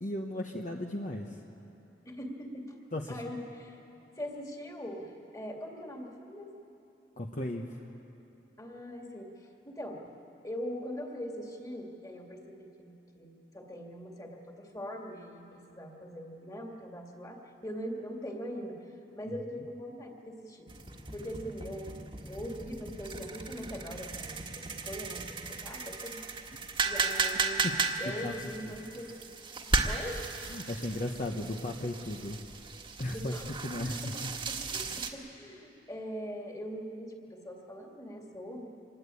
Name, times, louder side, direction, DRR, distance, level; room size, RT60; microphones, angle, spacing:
voice 1, 0.0-1.4 2.9-3.2 7.2-7.8 19.3-19.4 27.6-27.8 28.2-28.3 28.6-28.8 30.5-32.4 33.0-33.3 33.6-34.0, left 1 dB, 45° left, 1 dB, 1.2 m, -35 dB
voice 2, 2.1-2.7 3.1-3.8 4.2-6.5 8.6-10.1 10.4-18.9 19.1-20.7 21.1-22.0 22.3-26.2 26.8-29.1 29.8-30.2 33.1-33.5 33.8-34.2 34.5-38.7, equal, 20° left, 1 dB, 2.4 m, -41 dB
sound 1, 20.7-35.1, right 4 dB, 30° right, 1.6 m, -35 dB
25.5 x 20.5 x 8.5 m, 2.9 s
head